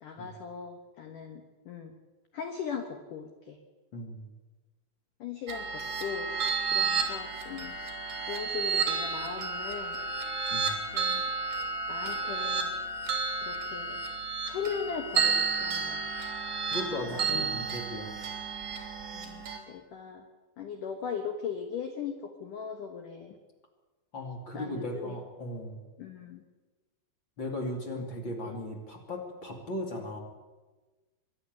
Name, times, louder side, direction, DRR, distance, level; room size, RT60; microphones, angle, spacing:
voice 1, 0.0-2.0 2.3-3.6 5.2-6.3 6.6-7.8 8.2-10.0 10.9-11.2 11.9-12.7 13.4-14.0 14.4-16.0 17.1-17.4 19.1-20.3 20.6-23.4 24.5-25.2 26.0-26.4 28.0-28.1 28.5-28.6, left 6 dB, 70° left, 6 dB, 2.0 m, -39 dB
voice 2, 3.9-4.3 10.5-10.8 16.7-18.2 24.1-25.9 27.4-30.2, left 1 dB, 35° left, 2 dB, 2.3 m, -37 dB
sound 1, 5.5-19.6, right 5 dB, 40° right, 4.2 m, -32 dB
24.0 x 11.5 x 9.4 m, 1.2 s
omnidirectional pair, 5.7 m